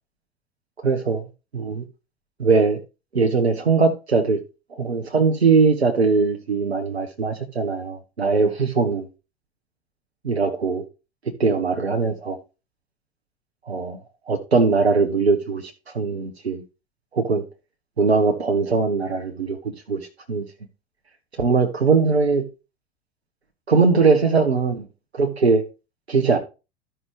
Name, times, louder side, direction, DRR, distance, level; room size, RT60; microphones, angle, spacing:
voice 1, 0.8-1.2 1.5-1.8 2.4-2.8 3.1-4.4 4.8-9.1 10.2-10.8 11.4-12.4 13.7-14.0 14.3-16.6 17.1-17.4 18.0-19.6 19.9-20.0 20.3-20.4 21.4-22.4 23.7-24.9 25.1-25.6 26.1-26.4, right 4 dB, 85° right, 0.9 m, -20 dB
13.5 x 5.6 x 3.0 m
figure-of-eight pair, 80°, 31 cm